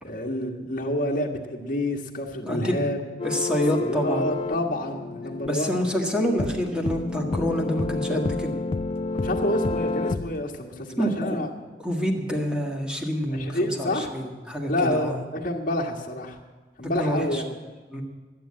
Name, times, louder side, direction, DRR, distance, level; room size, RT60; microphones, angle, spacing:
voice 1, 0.0-3.0 3.8-5.8 9.1-11.5 13.3-14.1 14.7-16.4 16.8-17.4, left 1 dB, 50° left, 0 dB, 1.7 m, -28 dB
voice 2, 2.4-2.9 3.2-4.2 5.4-8.5 11.0-11.4 11.8-15.2 16.8-17.4 17.9-18.0, equal, 5° right, 1 dB, 1.7 m, -27 dB
sound 1, 3.2-10.4, left 3 dB, 35° left, 0.3 m, -30 dB
11.5 x 9.0 x 8.6 m, 1.4 s
head